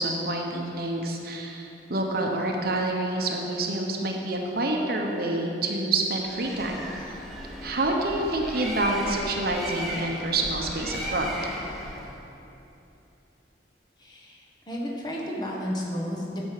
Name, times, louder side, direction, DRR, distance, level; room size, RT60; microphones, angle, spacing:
voice 1, 0.0-6.9 7.6-11.3, right 2 dB, 55° right, 1 dB, 1.0 m, -27 dB
Bird, 6.2-12.2, equal, ahead, 1.2 m, -36 dB
voice 2, 14.0-16.5, equal, 25° left, -3 dB, 1.4 m, -32 dB
9.7 x 5.3 x 7.6 m, 2.9 s
head